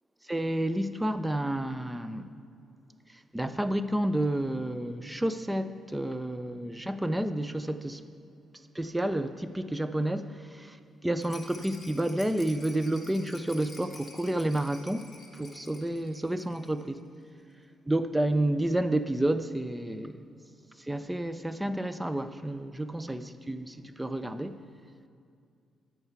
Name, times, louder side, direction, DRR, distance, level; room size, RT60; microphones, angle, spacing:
voice 1, 0.3-2.3 3.3-8.0 8.7-10.8 11.0-17.1 17.9-20.3 20.9-24.6, right 1 dB, 10° right, 0.5 m, -30 dB
Rattle, 11.2-16.9 17.1-17.2 17.5-17.6, left 2 dB, 20° left, 1.5 m, -50 dB
11.5 x 4.6 x 8.1 m
cardioid pair, 90°, 0 cm